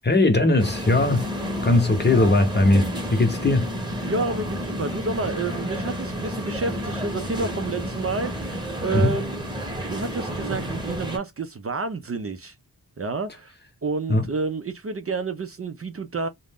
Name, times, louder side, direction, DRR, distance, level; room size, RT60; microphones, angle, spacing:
voice 1, 0.0-1.3 1.6-3.7 8.9-9.2 14.1-14.2, left 2 dB, 25° left, 0.8 m, -19 dB
sound 1, 0.6-11.2, equal, 10° right, 1.0 m, -30 dB
voice 2, 4.0-9.4 9.9-12.5 13.0-13.5 13.8-16.3, right 3 dB, 40° right, 0.5 m, -29 dB
2.4 x 2.1 x 3.4 m
wide cardioid pair, 90°, 38 cm